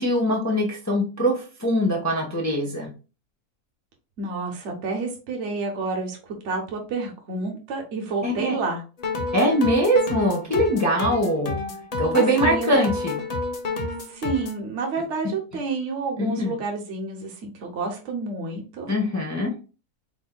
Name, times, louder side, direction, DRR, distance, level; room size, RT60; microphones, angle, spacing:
voice 1, 0.0-2.9 8.2-8.5 9.3-11.6 12.0-13.2 16.2-16.6 18.9-19.6, equal, 15° left, -1 dB, 0.8 m, -22 dB
voice 2, 4.2-6.2 6.4-8.8 12.2-12.7 14.1-18.9, right 3 dB, 50° right, 2 dB, 1.2 m, -29 dB
sound 1, 9.0-14.6, left 3 dB, 55° left, 0.4 m, -29 dB
4.4 x 4.3 x 2.2 m, 0.32 s
omnidirectional pair, 1.6 m